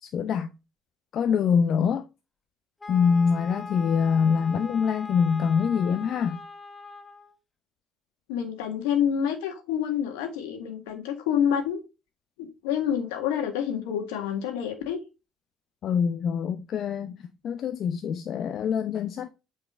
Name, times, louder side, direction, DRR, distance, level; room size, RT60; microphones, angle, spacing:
voice 1, 0.0-0.5 1.1-2.1 2.9-6.4 15.8-19.3, left 6 dB, 55° left, 0.7 m, -25 dB
Wind instrument woodwind instrument, 2.8-7.4, left 3 dB, 20° left, 1.4 m, -41 dB
voice 2, 8.3-11.8 12.4-15.0, left 9 dB, 75° left, 1.8 m, -28 dB
8.5 x 4.7 x 3.6 m
hypercardioid pair, 50°, 0 cm